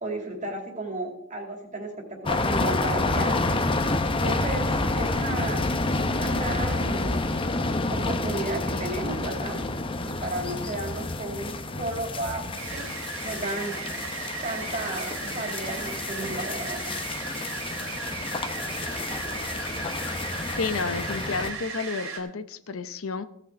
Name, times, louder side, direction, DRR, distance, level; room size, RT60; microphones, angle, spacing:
voice 1, 0.0-3.6 4.1-5.6 6.1-7.2 7.9-9.7 10.0-12.9 13.2-13.7 14.4-17.0, right 2 dB, 35° right, 2 dB, 2.6 m, -33 dB
sound 1, 2.3-21.5, left 2 dB, 25° left, 0.8 m, -29 dB
sound 2, 12.5-22.2, right 4 dB, 70° right, 3.3 m, -36 dB
voice 2, 20.6-23.2, left 4 dB, 70° left, 12 dB, 0.8 m, -31 dB
16.5 x 6.5 x 6.1 m, 0.76 s
head